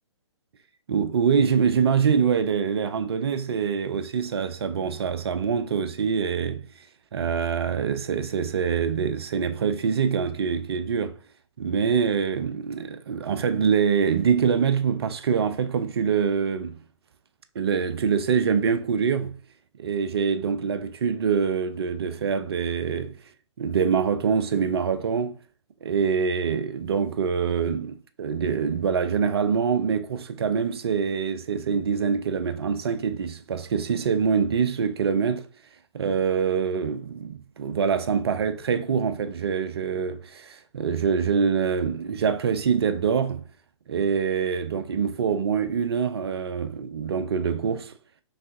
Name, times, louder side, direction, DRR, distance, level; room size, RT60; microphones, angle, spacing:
voice 1, 0.9-6.7 7.1-11.2 11.6-16.8 17.5-19.4 19.8-23.2 23.6-25.3 25.8-35.5 35.9-43.4 43.9-47.9, right 6 dB, 55° right, 0.6 m, -25 dB
5.6 x 3.5 x 2.6 m
figure-of-eight pair, 125°, 15 cm